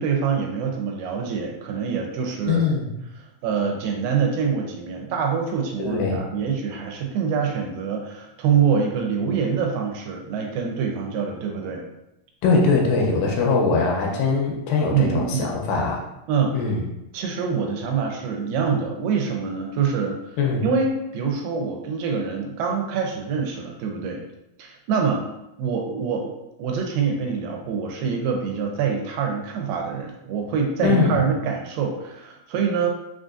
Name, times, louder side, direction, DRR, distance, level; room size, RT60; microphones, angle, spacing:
voice 1, 0.0-2.7 3.4-11.8 14.9-15.5 16.3-16.6 17.1-24.2 24.6-25.3 25.6-26.3 26.6-32.9, right 6 dB, 80° right, 2 dB, 2.3 m, -25 dB
voice 2, 2.5-2.9 5.8-6.2 12.4-16.0 16.5-16.8 20.4-20.6 30.8-31.2, left 4 dB, 80° left, -1 dB, 2.3 m, -21 dB
5.5 x 2.5 x 2.5 m, 0.89 s
omnidirectional pair, 4.1 m